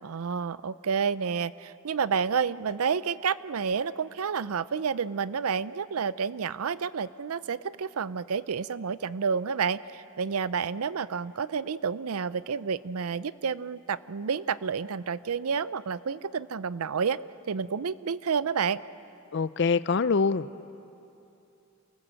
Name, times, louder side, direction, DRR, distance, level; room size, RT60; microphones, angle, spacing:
voice 1, 0.0-17.2 17.4-18.8, right 6 dB, 85° right, 17 dB, 0.5 m, -30 dB
voice 2, 19.3-20.7, left 4 dB, 50° left, 16 dB, 0.5 m, -25 dB
28.0 x 19.5 x 7.6 m, 2.8 s
head